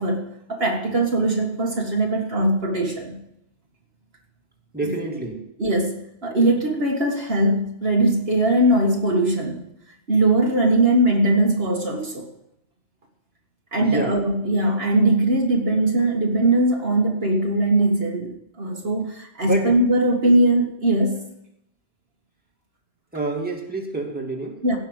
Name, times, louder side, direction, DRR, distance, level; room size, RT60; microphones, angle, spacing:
voice 1, 0.0-3.2 5.6-6.0 6.2-9.6 10.1-12.3 13.7-21.2 24.6-24.8, right 1 dB, 60° right, 0 dB, 1.9 m, -20 dB
voice 2, 4.7-5.4 13.8-14.1 19.4-19.8 23.1-24.5, right 2 dB, 10° right, -1 dB, 2.4 m, -27 dB
16.5 x 6.4 x 8.0 m, 0.81 s
omnidirectional pair, 1.2 m